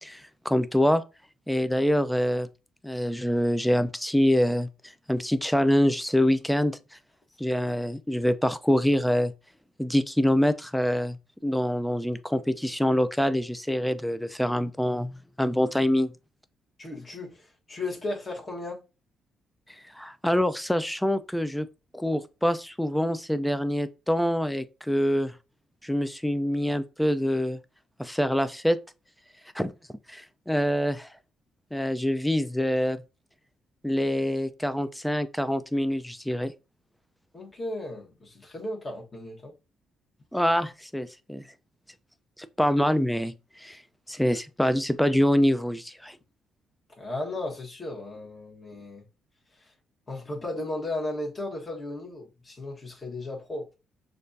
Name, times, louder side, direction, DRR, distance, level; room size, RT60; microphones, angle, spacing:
voice 1, 0.0-1.0 1.5-2.5 2.8-4.7 5.1-6.8 7.4-9.3 9.8-11.2 11.4-16.1 19.9-21.7 21.9-25.3 25.8-27.6 28.0-28.8 29.5-29.7 30.1-31.1 31.7-33.0 33.8-36.5 40.3-41.4 42.4-43.8 44.1-46.2, equal, 5° left, 0.4 m, -25 dB
voice 2, 16.8-18.8 37.3-39.5 47.0-49.1 49.6-49.7 50.1-53.7, left 2 dB, 30° left, 1.4 m, -35 dB
6.5 x 2.5 x 2.6 m
cardioid pair, 90°, 0 cm